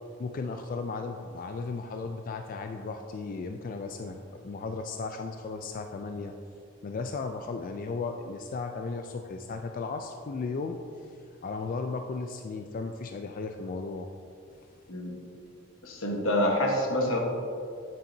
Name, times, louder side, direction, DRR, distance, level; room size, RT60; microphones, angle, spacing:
voice 1, 0.2-6.3 6.8-11.1 11.4-14.1, left 4 dB, 40° left, 5 dB, 0.3 m, -35 dB
voice 2, 14.9-15.2 15.8-17.2, left 1 dB, 85° left, 1 dB, 1.3 m, -27 dB
9.2 x 7.1 x 2.7 m, 2.4 s
head